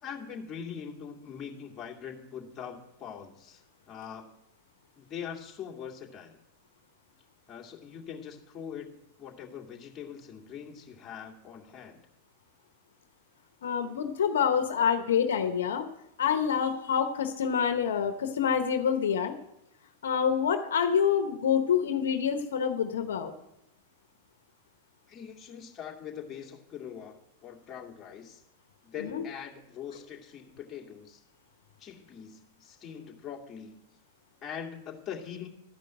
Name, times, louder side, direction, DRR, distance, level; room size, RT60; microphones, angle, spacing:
voice 1, 0.0-4.4 5.0-6.4 7.5-12.0 25.1-28.4 28.8-31.2 31.8-33.8 34.4-35.5, left 8 dB, 25° left, 0 dB, 2.2 m, -42 dB
voice 2, 13.6-15.9 16.2-19.3 20.0-23.3 29.0-29.2, left 7 dB, 80° left, 7 dB, 1.0 m, -27 dB
12.5 x 5.3 x 8.9 m, 0.85 s
hypercardioid pair, 115°, 0 cm